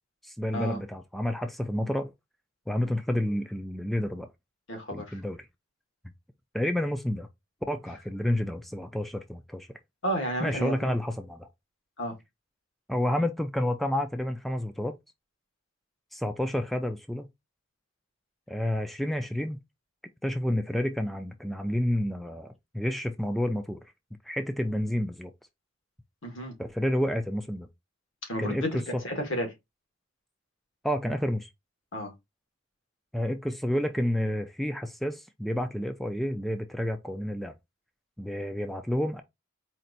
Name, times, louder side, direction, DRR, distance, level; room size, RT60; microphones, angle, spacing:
voice 1, 0.2-2.1 2.7-4.3 4.9-5.4 6.5-7.3 7.7-9.7 10.4-11.5 12.9-15.0 16.1-17.3 18.5-19.6 20.2-23.8 24.2-25.3 26.6-27.7 28.4-29.0 30.8-31.5 33.1-37.5 38.2-39.2, left 1 dB, ahead, 0.3 m, -30 dB
voice 2, 4.7-5.2 10.0-10.7 12.0-12.1 26.2-26.5 28.3-29.5 31.9-32.1, equal, 70° left, 1.6 m, -32 dB
4.4 x 2.5 x 3.9 m
head